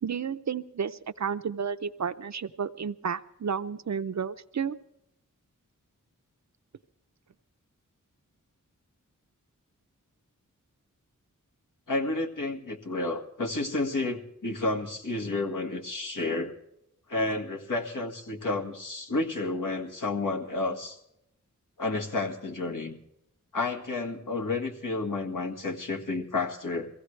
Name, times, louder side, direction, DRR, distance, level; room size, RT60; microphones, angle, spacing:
voice 1, 0.0-4.8, right 6 dB, 60° right, 10 dB, 0.6 m, -32 dB
voice 2, 11.9-16.5 17.1-21.0 21.8-23.0 23.5-26.9, left 2 dB, 70° left, 2 dB, 1.8 m, -31 dB
22.5 x 16.0 x 3.3 m, 0.79 s
wide cardioid pair, 95°, 33 cm